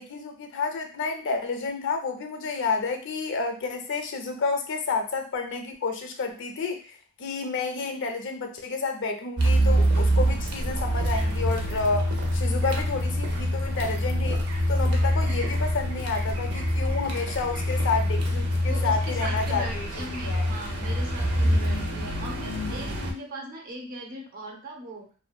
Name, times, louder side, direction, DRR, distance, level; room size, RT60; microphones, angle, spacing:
voice 1, 0.0-19.9 20.3-20.5, left 4 dB, 55° left, 5 dB, 0.4 m, -30 dB
Car, 9.4-23.1, equal, 85° right, 0.5 m, -25 dB
voice 2, 18.7-25.2, right 1 dB, 40° right, 1 dB, 0.5 m, -39 dB
2.6 x 2.1 x 2.2 m, 0.38 s
head